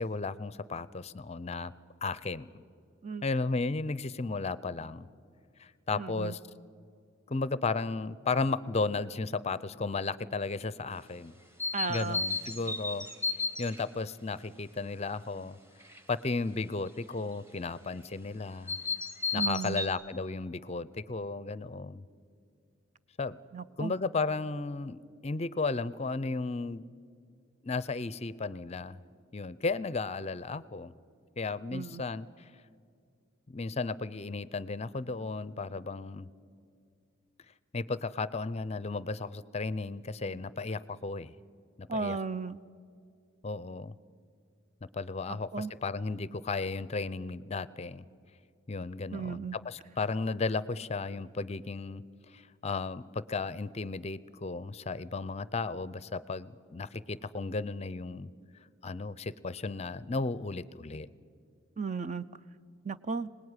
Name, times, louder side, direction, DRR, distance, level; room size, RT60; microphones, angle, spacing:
voice 1, 0.0-1.7 2.0-2.6 3.2-5.1 5.6-6.4 7.3-11.4 11.9-13.1 13.6-15.6 16.1-18.8 19.3-22.0 23.2-23.4 23.8-26.8 27.6-29.0 29.3-30.9 31.4-32.5 33.5-36.3 37.7-41.3 41.8-42.2 43.4-43.9 44.9-48.0 48.7-58.3 58.8-61.1, left 3 dB, 35° left, 18 dB, 0.5 m, -34 dB
voice 2, 5.9-6.3 11.7-12.2 19.3-19.8 23.5-23.9 31.7-32.0 41.9-42.6 45.3-45.7 49.1-49.6 61.8-62.3 62.8-63.3, right 5 dB, 35° right, 13 dB, 0.6 m, -35 dB
sound 1, 11.6-13.8 15.8-16.0 18.7-19.9, left 3 dB, 10° right, 1.6 m, -33 dB
25.5 x 19.0 x 9.7 m, 2.3 s
head